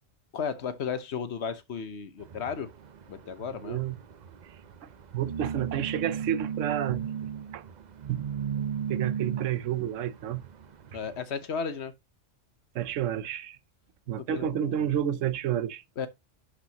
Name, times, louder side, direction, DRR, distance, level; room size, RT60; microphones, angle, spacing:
voice 1, 0.3-2.7 3.1-3.8 10.9-11.9 14.2-14.9 16.0-16.1, left 6 dB, 65° left, 1.2 m, -34 dB
sound 1, 2.2-11.2, right 8 dB, 50° right, 0.6 m, -36 dB
voice 2, 3.6-4.0 5.1-7.1 7.5-7.6 8.1-8.3 8.9-10.4 12.7-13.6 14.1-15.8, right 10 dB, 90° right, 1.1 m, -30 dB
11.5 x 5.0 x 2.9 m
omnidirectional pair, 1.2 m